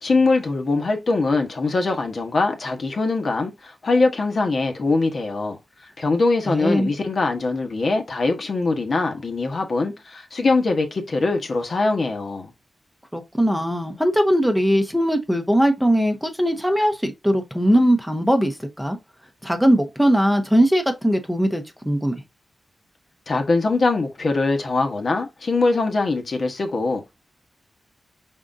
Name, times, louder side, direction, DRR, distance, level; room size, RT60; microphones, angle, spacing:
voice 1, 0.0-5.6 6.0-12.5 23.3-27.1, left 3 dB, 50° left, 1.0 m, -22 dB
voice 2, 6.5-6.9 13.1-19.0 19.4-22.2, equal, ahead, 0.8 m, -20 dB
5.1 x 3.7 x 2.5 m
wide cardioid pair, 120°, 0 cm